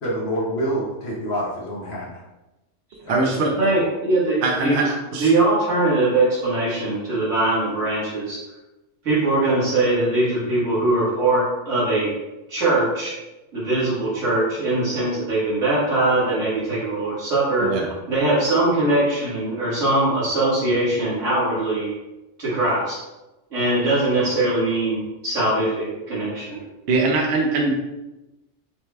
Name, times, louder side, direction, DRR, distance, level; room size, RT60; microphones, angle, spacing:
voice 1, 0.0-2.2 3.1-3.4, equal, 60° left, -5 dB, 1.2 m, -27 dB
voice 2, 3.0-3.7 4.4-5.3 17.6-17.9 26.9-27.7, right 3 dB, 65° right, 0 dB, 0.9 m, -22 dB
voice 3, 3.6-4.8 5.2-8.4 9.0-12.1 12.5-13.1 13.5-17.7 18.1-21.9 22.4-23.0 23.5-26.6, right 2 dB, 90° right, -10 dB, 1.9 m, -21 dB
5.5 x 2.2 x 3.2 m, 1.0 s
omnidirectional pair, 1.3 m